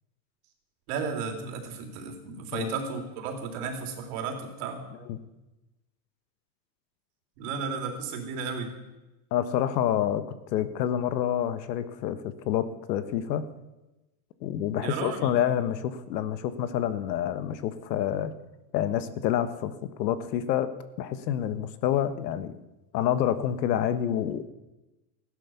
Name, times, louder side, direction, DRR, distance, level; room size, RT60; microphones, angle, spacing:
voice 1, 0.9-4.8 7.4-8.7 14.8-15.3, right 5 dB, 60° right, 4 dB, 3.4 m, -34 dB
voice 2, 9.3-10.2 10.5-13.5 14.4-18.3 18.7-20.7 21.0-22.6 22.9-24.5, left 10 dB, 85° left, 13 dB, 1.4 m, -28 dB
15.5 x 11.5 x 7.1 m, 1.0 s
supercardioid pair, 150°, 50 cm